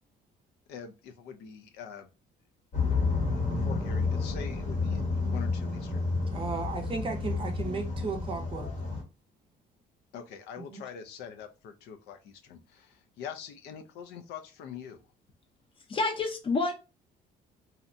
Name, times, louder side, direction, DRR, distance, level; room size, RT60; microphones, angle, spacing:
voice 1, 0.7-2.1 3.3-6.1 10.1-15.0, left 7 dB, 80° left, 0.5 m, -44 dB
sound 1, 2.7-9.0, left 3 dB, 45° left, 0.9 m, -30 dB
voice 2, 6.3-8.7 10.6-10.8, right 4 dB, 30° right, 0.5 m, -35 dB
voice 3, 15.9-16.7, left 3 dB, 30° left, 0.6 m, -28 dB
2.7 x 2.1 x 2.5 m
cardioid pair, 110°, 17 cm